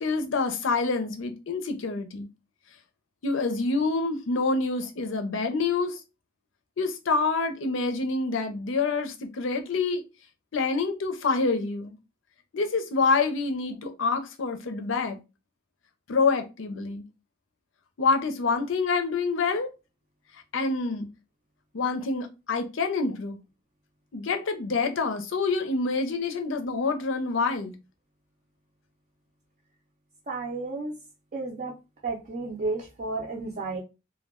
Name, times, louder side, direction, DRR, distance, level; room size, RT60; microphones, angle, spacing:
voice 1, 0.0-2.3 3.2-6.0 6.8-10.0 10.5-12.0 12.5-15.2 16.1-17.0 18.0-19.7 20.5-21.1 21.7-23.4 24.1-27.7, left 4 dB, 80° left, 0.5 m, -27 dB
voice 2, 30.3-30.9 31.3-31.7 32.0-33.8, right 3 dB, 45° right, 0.5 m, -32 dB
2.2 x 2.1 x 3.5 m
head